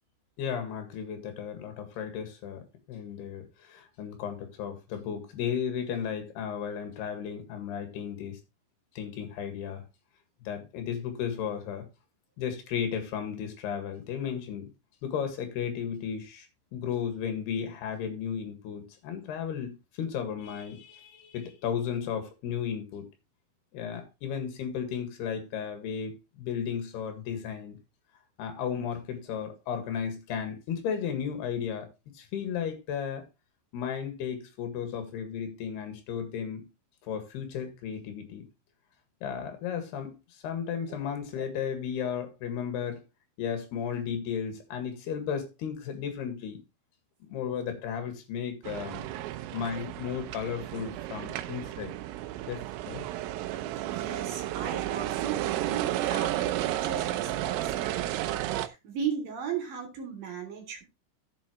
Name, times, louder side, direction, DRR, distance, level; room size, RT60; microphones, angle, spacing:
voice 1, 0.4-8.4 9.0-9.8 10.5-11.9 12.4-14.7 15.0-16.5 16.7-23.1 23.7-27.8 28.4-31.9 32.1-33.2 33.7-36.7 37.1-38.5 39.2-43.0 43.4-46.6 47.2-49.0 49.5-51.9 52.5-53.0, left 8 dB, 65° left, 3.4 m, -34 dB
sound 1, 48.6-58.7, right 14 dB, 85° right, 3.4 m, -32 dB
voice 2, 53.9-58.3 58.6-60.8, right 7 dB, 50° right, 4.4 m, -37 dB
12.5 x 7.7 x 3.1 m
omnidirectional pair, 5.7 m